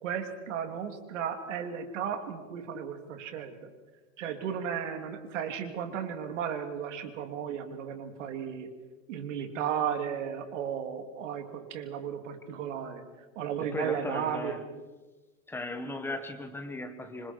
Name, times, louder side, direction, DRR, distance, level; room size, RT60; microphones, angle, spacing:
voice 1, 0.0-3.7 4.2-8.7 9.1-13.0 13.3-14.6, right 8 dB, 60° right, 6 dB, 3.2 m, -34 dB
voice 2, 13.6-14.6 15.5-17.3, left 2 dB, 5° left, 7 dB, 1.1 m, -37 dB
27.0 x 25.0 x 4.7 m, 1.2 s
supercardioid pair, 155°, 43 cm